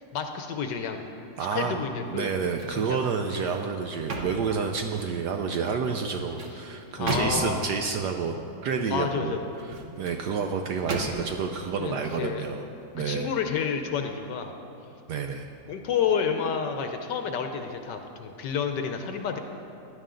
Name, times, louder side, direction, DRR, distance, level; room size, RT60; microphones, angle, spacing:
voice 1, 0.1-1.0 1.5-2.3 2.7-3.0 7.0-7.7 8.9-9.5 11.8-12.4 13.0-14.5 15.7-19.4, left 6 dB, 65° left, 5 dB, 1.2 m, -30 dB
voice 2, 1.4-1.8 2.1-8.4 8.6-12.6 12.9-13.3 15.1-15.5, right 5 dB, 70° right, 4 dB, 1.0 m, -29 dB
sound 1, 2.1-2.8 3.3-5.2 6.0-7.7 9.5-10.2 10.9-11.5 12.0-12.2, right 2 dB, 45° right, 1.2 m, -35 dB
16.0 x 10.5 x 3.8 m, 2.8 s
omnidirectional pair, 2.2 m